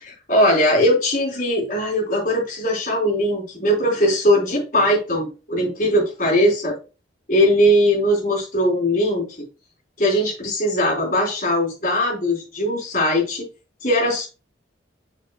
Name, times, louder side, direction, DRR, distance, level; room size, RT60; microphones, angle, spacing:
voice 1, 0.3-6.8 7.3-9.2 10.0-13.5 13.8-14.3, equal, 45° left, -3 dB, 3.7 m, -20 dB
6.8 x 6.6 x 2.3 m, 0.32 s
head